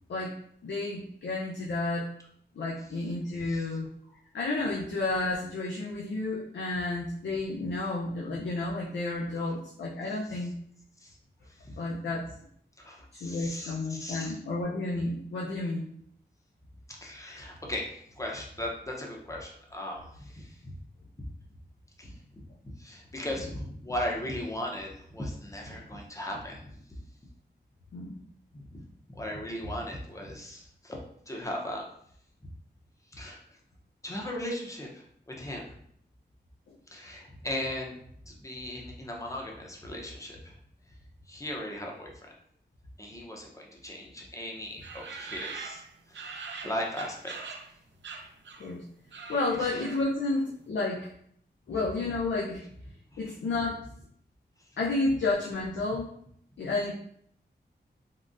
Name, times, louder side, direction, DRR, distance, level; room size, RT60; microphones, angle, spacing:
voice 1, 0.1-2.1 2.6-3.9 4.3-10.5 11.8-12.2 13.1-15.9 27.9-28.2 36.7-36.8 48.6-48.8 49.3-51.1 51.7-52.7 53.2-53.8 54.8-56.1 56.6-56.9, left 2 dB, 90° left, -5 dB, 0.5 m, -31 dB
voice 2, 12.8-14.3 16.9-20.8 22.0-22.5 22.8-26.7 28.5-31.0 31.3-31.9 33.1-33.4 34.0-35.7 36.9-38.0 38.2-40.5 41.3-42.1 43.0-45.8 46.1-47.4 49.6-49.8 53.1-53.2, left 1 dB, 15° left, -1 dB, 0.6 m, -37 dB
sound 1, 44.8-47.7 48.0-48.8 49.0-50.2, right 4 dB, 85° right, 0.4 m, -42 dB
3.7 x 2.1 x 2.5 m, 0.66 s
wide cardioid pair, 85°, 18 cm